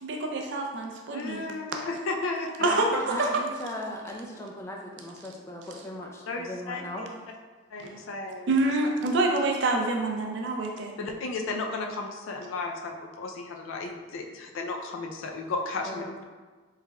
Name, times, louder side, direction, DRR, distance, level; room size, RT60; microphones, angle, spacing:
voice 1, 0.0-1.4 2.6-3.3 8.5-10.9, right 2 dB, 60° right, 2 dB, 0.4 m, -26 dB
voice 2, 1.1-2.7 6.3-7.1 7.7-8.5 11.0-16.2, left 3 dB, 80° left, 2 dB, 0.4 m, -34 dB
voice 3, 2.6-7.1 15.9-16.2, left 1 dB, 15° left, -1 dB, 0.4 m, -37 dB
4.6 x 3.3 x 2.2 m, 1.4 s
head